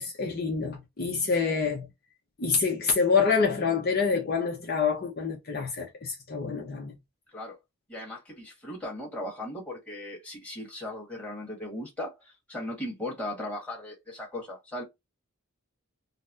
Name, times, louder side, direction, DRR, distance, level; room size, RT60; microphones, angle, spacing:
voice 1, 0.0-1.9 2.4-7.0, left 5 dB, 45° left, 0.7 m, -27 dB
voice 2, 7.9-14.8, left 1 dB, 5° left, 1.4 m, -37 dB
4.0 x 2.1 x 2.5 m
head